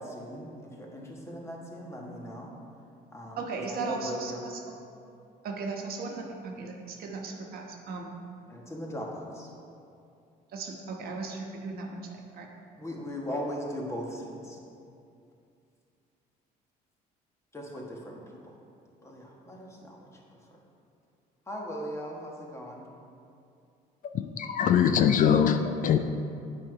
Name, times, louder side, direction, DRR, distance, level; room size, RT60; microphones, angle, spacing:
voice 1, 0.0-2.5 3.1-3.4 3.7-4.5 8.5-9.5 12.8-14.6 17.5-18.2 19.0-20.4 21.5-22.8, equal, 15° left, -2 dB, 1.4 m, -38 dB
voice 2, 3.4-4.6 5.4-8.1 10.5-12.5, right 4 dB, 65° right, 1 dB, 1.1 m, -37 dB
voice 3, 24.0-26.0, left 8 dB, 50° left, 8 dB, 0.4 m, -23 dB
8.8 x 4.7 x 4.8 m, 2.5 s
cardioid pair, 110°, 17 cm